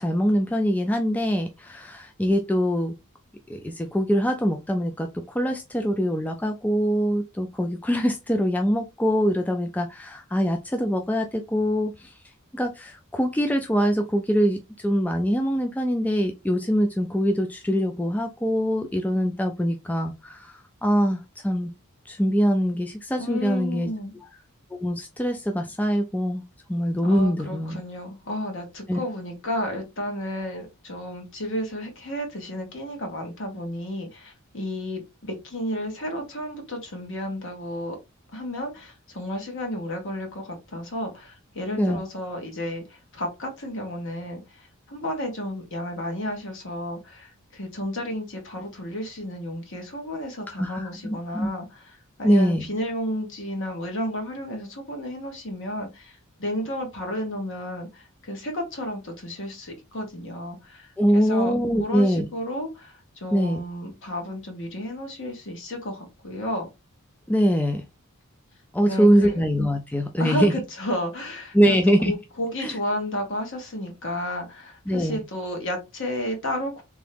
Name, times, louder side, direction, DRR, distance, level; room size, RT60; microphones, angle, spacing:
voice 1, 0.0-2.9 3.5-12.1 12.5-21.7 22.1-23.9 24.7-26.4 26.7-27.8 28.9-29.0 41.7-42.0 50.6-51.5 52.2-52.7 61.0-62.3 63.3-63.6 67.3-67.8 68.7-70.5 71.5-72.1 72.6-72.7 74.9-75.2, equal, 5° left, 0.3 m, -23 dB
voice 2, 23.2-24.1 27.0-38.0 38.3-66.7 68.9-69.3 70.2-71.8 72.0-76.8, left 1 dB, 60° left, 1.4 m, -32 dB
3.6 x 3.0 x 3.3 m
head